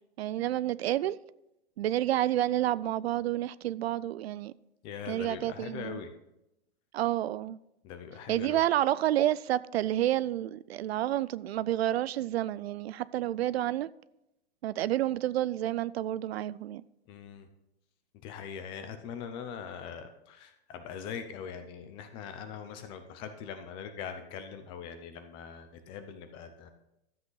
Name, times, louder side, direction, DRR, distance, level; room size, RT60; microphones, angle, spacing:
voice 1, 0.2-1.2 1.8-4.5 5.1-6.0 6.9-7.6 8.3-13.9 14.6-16.8, right 13 dB, 65° right, 0.5 m, -29 dB
voice 2, 4.8-6.1 7.8-8.6 17.1-17.5 18.2-26.7, left 7 dB, 15° left, 0.5 m, -42 dB
12.5 x 8.1 x 3.9 m
hypercardioid pair, 160°, 33 cm